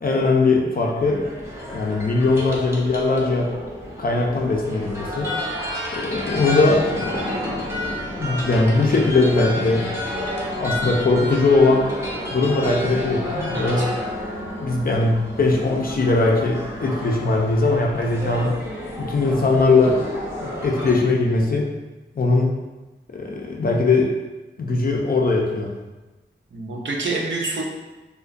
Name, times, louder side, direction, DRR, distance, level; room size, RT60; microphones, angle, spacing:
voice 1, 0.0-1.2 1.7-3.5 4.0-5.3 5.9-9.9 10.1-11.9 12.3-13.9 14.6-18.6 19.0-20.0 20.4-21.7 22.2-22.5 23.1-24.1 24.6-25.7, left 3 dB, 50° left, -1 dB, 0.4 m, -20 dB
sound 1, 1.0-20.9, left 1 dB, 15° right, 0.5 m, -30 dB
voice 2, 13.5-13.8 26.5-27.6, right 3 dB, 70° right, -1 dB, 0.5 m, -27 dB
2.3 x 2.2 x 2.5 m, 1.1 s
wide cardioid pair, 80°, 20 cm